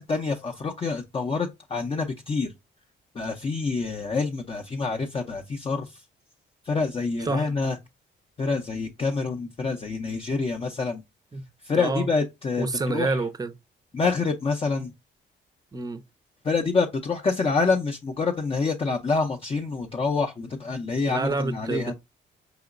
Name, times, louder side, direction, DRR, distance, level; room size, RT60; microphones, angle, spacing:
voice 1, 0.0-2.5 3.1-5.9 6.7-7.8 8.4-11.0 11.6-13.2 13.9-14.9 16.4-21.9, left 4 dB, 30° left, 0.5 m, -27 dB
voice 2, 7.2-7.5 11.3-11.4 11.7-12.1 12.6-13.5 15.7-16.0 21.1-21.9, right 3 dB, 20° right, 0.5 m, -28 dB
4.9 x 2.9 x 2.4 m
cardioid pair, 90°, 20 cm